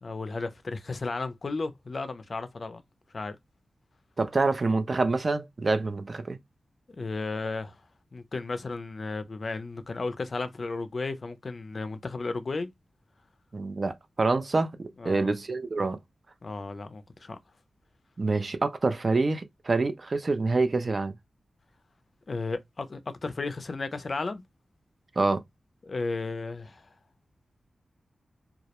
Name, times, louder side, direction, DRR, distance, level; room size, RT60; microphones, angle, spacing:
voice 1, 0.0-2.8 3.1-3.4 7.0-7.8 8.1-12.7 15.0-15.3 16.4-17.4 22.3-24.4 25.8-26.9, left 3 dB, 45° left, 0.4 m, -34 dB
voice 2, 4.2-6.4 13.5-16.0 18.2-21.1 25.2-25.4, right 3 dB, 40° right, 0.3 m, -26 dB
2.3 x 2.0 x 2.8 m
wide cardioid pair, 125°, 0 cm